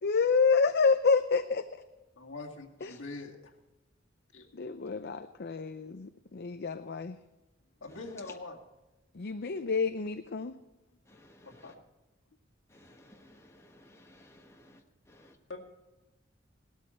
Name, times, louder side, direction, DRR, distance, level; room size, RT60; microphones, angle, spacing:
voice 1, 0.0-1.8 2.8-3.0 4.5-7.2 9.1-10.5, left 4 dB, 55° left, 9 dB, 0.6 m, -28 dB
voice 2, 2.2-3.4 4.3-4.5 7.8-8.6 11.4-11.7 15.5-15.6, left 3 dB, 70° left, 0 dB, 2.1 m, -43 dB
voice 3, 12.8-14.7 15.2-15.3, left 1 dB, 15° left, 1 dB, 1.4 m, -57 dB
18.0 x 13.0 x 4.4 m, 1.1 s
head